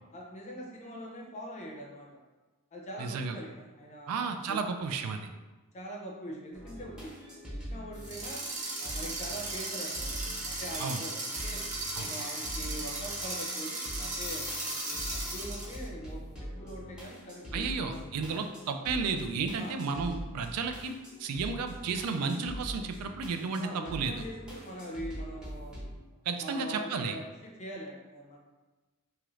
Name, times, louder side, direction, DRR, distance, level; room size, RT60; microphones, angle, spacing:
voice 1, 0.1-2.1 2.7-4.1 4.5-4.6 5.7-7.1 7.4-8.4 8.8-11.6 11.9-18.0 18.3-18.5 19.6-19.8 23.6-25.8 26.4-28.4, equal, 30° left, -1 dB, 0.5 m, -43 dB
voice 2, 3.0-3.4 4.1-5.3 10.8-11.0 11.9-12.1 17.5-24.2 26.3-27.2, right 4 dB, 75° right, 6 dB, 0.3 m, -33 dB
sound 1, 6.5-26.0, equal, 5° right, 0.7 m, -43 dB
sound 2, 8.0-15.8, right 2 dB, 35° right, 0.7 m, -36 dB
sound 3, 14.2-15.5, left 6 dB, 85° left, 0.5 m, -43 dB
2.9 x 2.4 x 3.1 m, 1.2 s
head